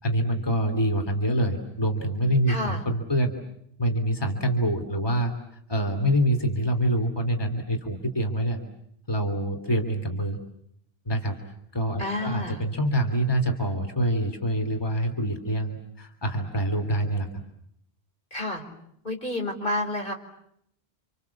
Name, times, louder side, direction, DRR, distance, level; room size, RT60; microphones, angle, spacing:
voice 1, 0.0-3.3 3.8-5.3 5.7-8.6 9.1-10.4 11.0-17.3, equal, 25° left, 5 dB, 2.9 m, -26 dB
voice 2, 2.5-2.8 12.0-12.6 18.3-18.6 19.0-20.1, left 1 dB, 55° left, 3 dB, 4.8 m, -30 dB
29.5 x 27.0 x 7.2 m, 0.73 s
omnidirectional pair, 1.1 m